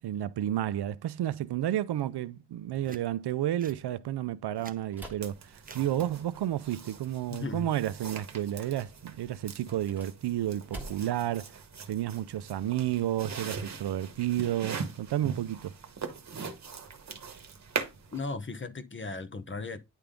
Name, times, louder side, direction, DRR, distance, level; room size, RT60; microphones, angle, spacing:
voice 1, 0.0-15.7, right 12 dB, 70° right, 0.5 m, -31 dB
sound 1, 2.8-3.1 3.6-3.8 4.4-4.8 5.6-5.9 7.2-7.4, right 4 dB, 20° right, 0.6 m, -49 dB
sound 2, 4.9-6.3 9.6-11.3, right 1 dB, 5° right, 1.7 m, -47 dB
sound 3, 5.2-18.2, right 5 dB, 40° right, 1.2 m, -41 dB
voice 2, 7.3-7.7 18.1-19.8, left 3 dB, 30° left, 0.9 m, -36 dB
9.9 x 3.5 x 3.7 m
wide cardioid pair, 130°, 42 cm